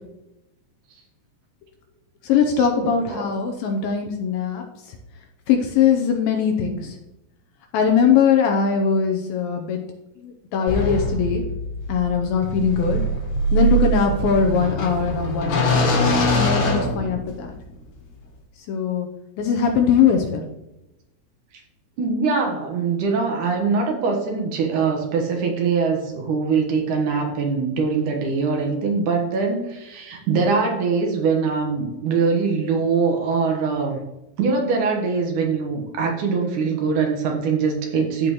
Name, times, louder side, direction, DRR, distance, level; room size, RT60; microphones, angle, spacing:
voice 1, 2.2-5.0 5.5-7.0 7.7-9.8 10.2-11.4 11.9-13.0 13.5-15.8 16.3-17.5 18.7-19.1 19.4-20.5, left 6 dB, 75° left, 3 dB, 2.4 m, -21 dB
sound 1, 10.7-17.6, equal, 55° left, 1.7 m, -23 dB
voice 2, 22.0-34.0 34.4-38.3, right 5 dB, 65° right, 2 dB, 2.4 m, -22 dB
14.5 x 5.1 x 3.1 m, 0.93 s
omnidirectional pair, 4.5 m